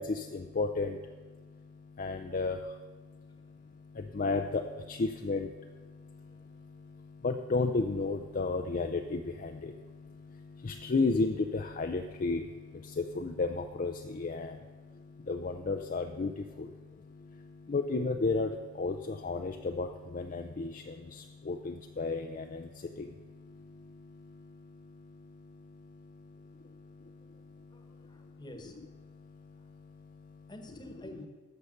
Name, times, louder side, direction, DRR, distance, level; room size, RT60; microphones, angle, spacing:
voice 1, 0.0-28.4 29.1-30.5, left 3 dB, 40° left, 5 dB, 0.4 m, -35 dB
voice 2, 27.7-28.8 30.5-31.3, equal, 20° left, 5 dB, 1.1 m, -49 dB
12.0 x 6.8 x 6.5 m, 1.4 s
head